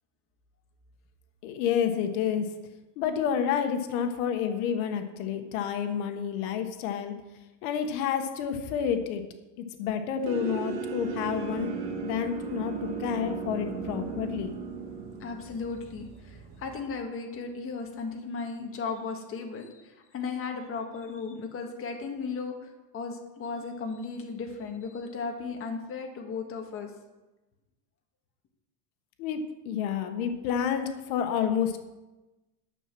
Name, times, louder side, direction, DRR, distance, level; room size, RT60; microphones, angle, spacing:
voice 1, 1.4-2.5 3.0-7.1 7.6-9.2 9.6-11.7 12.0-14.6 29.2-29.4 29.6-31.8, left 8 dB, 85° left, 6 dB, 1.3 m, -29 dB
sound 1, 10.3-16.8, right 5 dB, 60° right, 2.0 m, -36 dB
voice 2, 15.2-26.9, left 4 dB, 30° left, 3 dB, 1.6 m, -36 dB
11.0 x 7.2 x 6.1 m, 1.1 s
cardioid pair, 150°, 42 cm